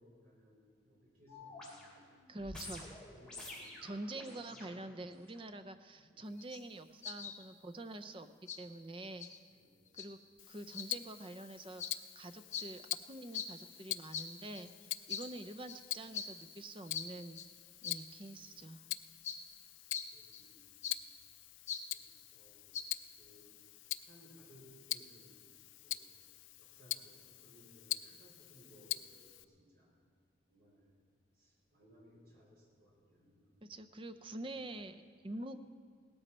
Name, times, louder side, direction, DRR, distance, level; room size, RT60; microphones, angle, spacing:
voice 1, 0.0-2.1 3.1-4.0 4.3-4.9 9.5-9.9 18.3-18.4 20.1-20.9 21.9-22.7 23.2-23.5 24.1-25.5 25.8-26.2 26.6-30.0 30.5-30.9 31.3-33.6 34.3-34.6, equal, 50° right, -4 dB, 4.7 m, -63 dB
sound 1, 1.3-5.4 6.0-6.2, left 2 dB, 5° left, 3.0 m, -50 dB
voice 2, 2.3-2.8 3.8-8.3 8.6-9.3 10.0-10.2 10.5-12.8 13.1-17.4 17.8-18.8 33.6-35.6, right 2 dB, 25° right, 10 dB, 0.5 m, -46 dB
sound 2, 6.4-6.6 7.0-7.4 7.9-8.0 8.5-8.6 9.2-9.4 10.0-10.1 10.7-10.9 11.8-11.9 12.5-12.7 13.3-13.5 14.1-14.3 14.5-14.7 15.1-15.3 15.7-15.9 16.1-16.3 16.9-17.1 17.4-17.5 17.8-18.0 18.4-18.5 19.2-19.4 19.9-20.1 20.3-20.4 20.8-21.0 21.7-21.8 22.7-22.8, left 7 dB, 40° left, 0.7 m, -42 dB
Tick-tock, 10.4-29.4, left 15 dB, 85° left, 0.4 m, -45 dB
17.5 x 13.5 x 4.3 m, 2.1 s
head